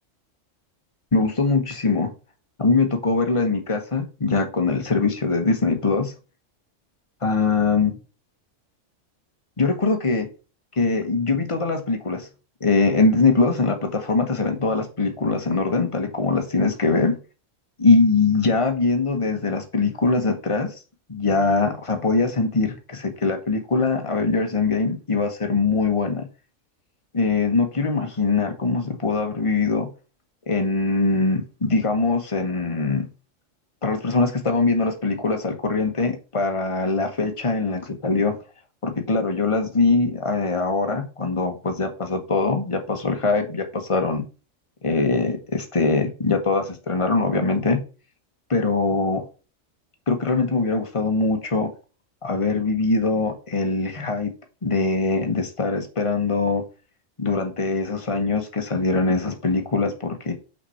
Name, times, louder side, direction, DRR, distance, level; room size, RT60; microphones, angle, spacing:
voice 1, 1.1-2.1 2.6-6.1 7.2-7.9 9.6-10.3 10.8-12.3 12.6-17.1 17.8-20.7 21.1-26.3 27.1-29.9 30.5-33.0 33.8-38.4 38.8-44.2 44.8-47.8 48.5-49.2 50.1-51.7 52.2-54.3 54.6-56.6 57.2-60.3, left 3 dB, 25° left, 1.2 m, -22 dB
5.8 x 4.5 x 5.7 m
omnidirectional pair, 1.3 m